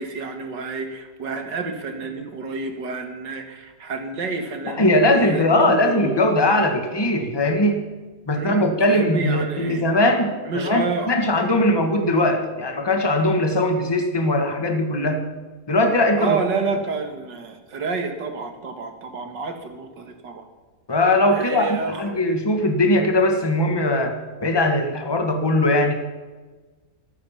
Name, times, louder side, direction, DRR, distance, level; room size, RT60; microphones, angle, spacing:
voice 1, 0.0-6.2 8.4-9.8 10.4-11.1 16.2-20.4 21.3-22.1, right 4 dB, 80° right, 6 dB, 2.4 m, -29 dB
voice 2, 4.7-7.8 8.3-15.2 15.7-16.4 20.9-24.2 24.4-25.9, left 1 dB, 15° left, 5 dB, 1.5 m, -20 dB
14.0 x 13.5 x 5.9 m, 1.3 s
omnidirectional pair, 1.9 m